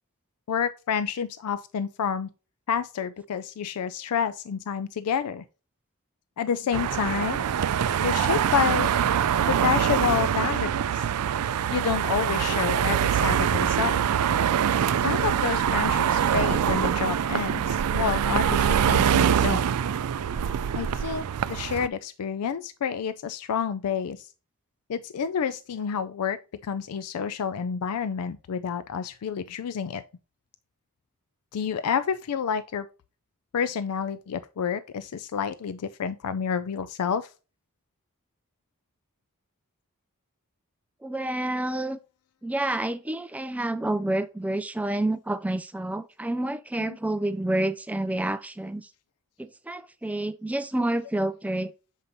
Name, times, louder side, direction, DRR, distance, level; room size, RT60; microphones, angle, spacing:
voice 1, 0.5-2.3 2.7-5.4 6.4-7.4 8.0-8.9 9.5-11.1 11.7-14.0 15.0-19.7 20.7-24.3 24.9-30.0 31.5-32.9 33.5-37.3 46.8-47.0, left 7 dB, 85° left, 0.4 m, -29 dB
sound 1, 6.7-21.9, right 8 dB, 85° right, 0.4 m, -24 dB
voice 2, 41.0-42.0 42.4-48.9 49.4-51.7, right 1 dB, 5° right, 0.3 m, -29 dB
7.3 x 5.1 x 2.7 m
head